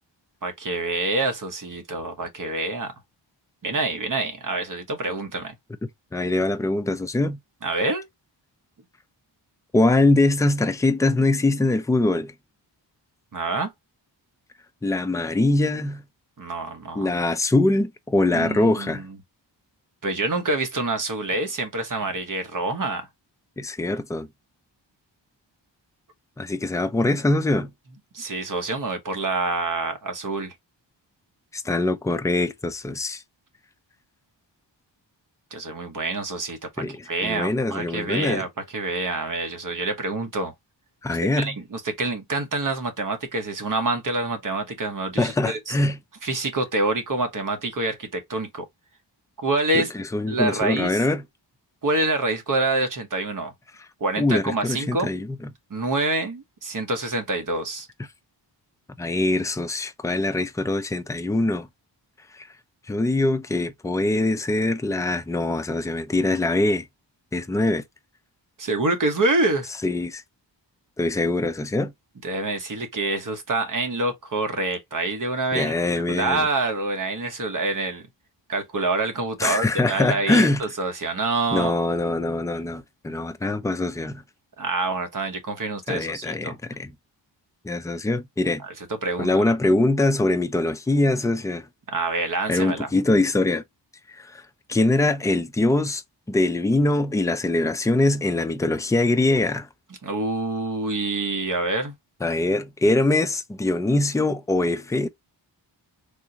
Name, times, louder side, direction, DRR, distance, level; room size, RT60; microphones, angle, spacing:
voice 1, 0.4-2.9 3.6-5.6 7.6-8.0 13.3-13.7 16.4-17.1 18.3-19.2 20.0-23.1 28.1-30.5 35.5-40.5 41.4-45.8 46.2-48.7 49.4-49.9 50.3-51.0 51.8-53.5 54.0-55.1 55.7-57.9 68.6-69.7 72.2-75.7 76.1-78.0 78.5-81.8 83.5-83.6 84.6-86.5 88.6-89.5 91.9-92.9 100.0-101.9, right 2 dB, 45° right, 1.0 m, -26 dB
voice 2, 5.8-7.4 9.7-12.3 14.8-16.0 17.0-19.0 23.6-24.3 26.4-27.7 31.5-33.2 36.8-37.0 37.2-38.4 41.0-41.6 45.2-46.0 49.7-51.2 54.2-55.4 59.0-61.7 62.3-62.5 62.9-66.9 67.3-67.8 69.8-70.2 71.0-71.9 75.5-76.5 79.4-80.6 81.5-84.2 85.9-86.9 87.6-88.6 89.2-91.7 92.5-93.6 94.1-94.4 94.7-96.0 96.3-99.7 102.2-105.1, left 2 dB, 10° left, 0.3 m, -23 dB
3.5 x 2.6 x 2.8 m
wide cardioid pair, 110°, 45 cm